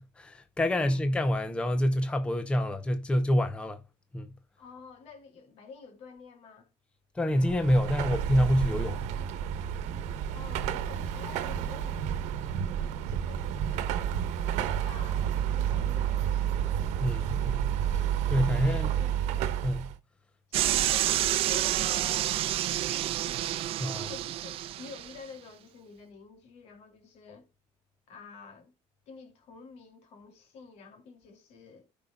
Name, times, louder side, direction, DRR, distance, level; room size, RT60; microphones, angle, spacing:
voice 1, 0.0-3.8 4.1-4.3 7.1-9.0 17.0-17.7 18.3-18.9 19.6-19.9 23.8-24.1, equal, 10° left, 0.7 m, -27 dB
voice 2, 0.6-1.0 4.6-6.7 10.3-14.0 14.8-17.0 18.4-19.1 20.5-23.5 24.0-27.5 28.1-28.7 29.1-31.9, left 4 dB, 65° left, 2.8 m, -50 dB
Car passing by / Traffic noise roadway noise / Engine, 7.3-20.0, right 9 dB, 80° right, 1.0 m, -30 dB
sound 1, 20.5-25.1, right 13 dB, 55° right, 0.5 m, -28 dB
16.0 x 5.4 x 2.3 m
cardioid pair, 155°, 12 cm